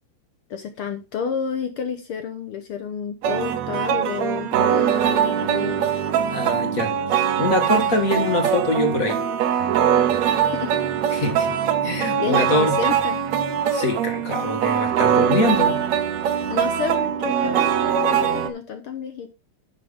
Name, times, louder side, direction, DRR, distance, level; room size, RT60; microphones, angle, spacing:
voice 1, 0.5-5.9 10.4-10.8 12.2-13.2 16.5-19.3, left 7 dB, 65° left, 7 dB, 1.4 m, -30 dB
sound 1, 3.2-18.5, right 9 dB, 70° right, 2.1 m, -22 dB
voice 2, 6.3-9.2 11.1-11.5 11.8-12.8 13.7-15.8, left 2 dB, 35° left, 5 dB, 1.7 m, -24 dB
10.5 x 6.6 x 3.6 m, 0.27 s
omnidirectional pair, 3.4 m